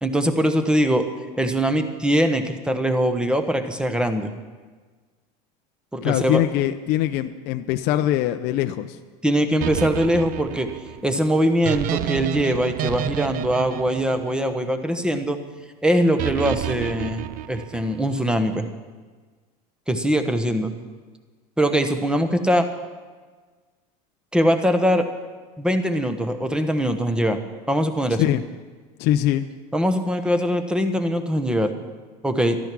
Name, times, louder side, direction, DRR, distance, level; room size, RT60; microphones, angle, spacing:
voice 1, 0.0-1.0 1.4-4.3 5.9-6.4 9.2-10.7 11.0-15.4 15.8-18.7 19.9-20.7 21.6-22.7 24.3-25.1 25.6-27.4 27.7-28.2 29.7-31.7 32.2-32.6, equal, 5° right, 7 dB, 1.1 m, -22 dB
voice 2, 6.0-9.0 28.1-28.4 29.0-29.5, left 13 dB, 55° left, 8 dB, 0.6 m, -22 dB
sound 1, 9.6-14.9 16.2-18.1, right 12 dB, 45° right, 0.5 m, -30 dB
13.0 x 12.0 x 6.1 m, 1.4 s
supercardioid pair, 125°, 20 cm